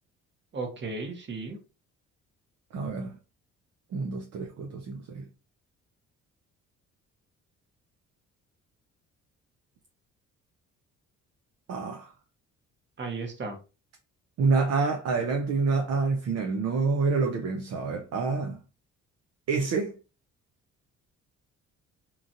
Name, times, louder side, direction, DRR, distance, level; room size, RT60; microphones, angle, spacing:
voice 1, 0.5-1.6 13.0-13.6, right 3 dB, 40° right, 1.0 m, -35 dB
voice 2, 2.7-3.1 3.9-5.2 11.7-12.1 14.4-18.6 19.5-19.9, right 4 dB, 55° right, 0.5 m, -27 dB
2.9 x 2.5 x 2.5 m
cardioid pair, 90°, 30 cm